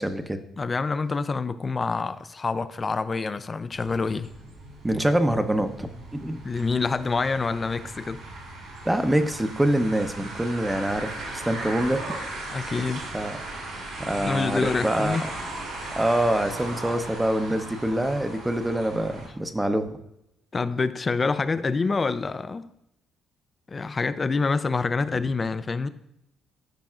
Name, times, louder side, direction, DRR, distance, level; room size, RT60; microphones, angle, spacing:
voice 1, 0.0-0.4 4.8-6.4 8.8-12.0 13.1-13.4 14.0-15.2 16.0-19.9 25.1-25.2, right 1 dB, 10° right, 0.7 m, -25 dB
voice 2, 0.6-4.3 6.4-8.2 12.5-13.1 14.2-15.2 20.5-22.7 23.7-25.9, left 4 dB, 35° left, 0.4 m, -26 dB
sound 1, 3.7-19.3, right 2 dB, 85° right, 3.1 m, -37 dB
13.0 x 5.3 x 2.4 m
supercardioid pair, 75°, 0 cm